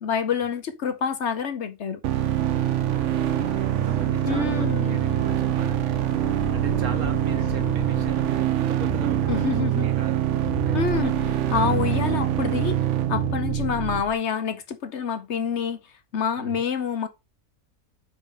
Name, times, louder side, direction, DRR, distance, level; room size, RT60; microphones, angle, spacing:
voice 1, 0.0-2.0 4.2-5.0 9.3-9.9 10.7-12.8 13.1-15.8 16.1-17.1, left 7 dB, 55° left, 1.0 m, -27 dB
sound 1, 2.0-14.0, right 12 dB, 65° right, 0.8 m, -24 dB
sound 2, 2.1-8.4, left 5 dB, 40° left, 0.7 m, -38 dB
voice 2, 2.8-11.1 11.5-11.7 16.4-16.6, right 5 dB, 80° right, 1.7 m, -36 dB
sound 3, 8.8-14.1, left 9 dB, 75° left, 0.5 m, -38 dB
5.5 x 4.1 x 5.2 m
omnidirectional pair, 1.5 m